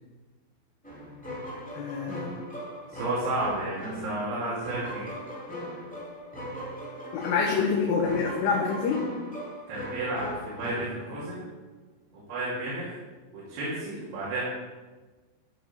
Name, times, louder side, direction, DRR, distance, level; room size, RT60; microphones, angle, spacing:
sound 1, 0.8-11.5, equal, 15° left, 0.3 m, -39 dB
voice 1, 1.7-2.4 7.1-9.0, left 5 dB, 75° left, 0 dB, 3.1 m, -26 dB
voice 2, 2.9-5.1 9.7-10.3 10.6-11.5 12.3-12.9 13.3-14.4, right 2 dB, 80° right, -8 dB, 5.1 m, -32 dB
13.5 x 6.9 x 5.6 m, 1.3 s
omnidirectional pair, 5.3 m